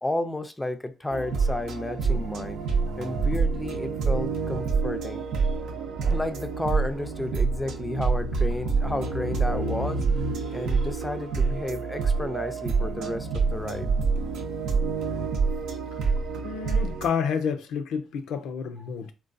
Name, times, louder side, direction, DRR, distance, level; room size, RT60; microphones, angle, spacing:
voice 1, 0.0-2.6 3.0-5.2 6.1-10.0 10.5-13.9, left 1 dB, 10° left, 0.4 m, -32 dB
sound 1, 1.1-17.1, right 4 dB, 80° right, 0.6 m, -27 dB
voice 2, 16.4-19.1, left 6 dB, 85° left, 0.4 m, -29 dB
3.8 x 2.3 x 2.5 m
cardioid pair, 90°, 0 cm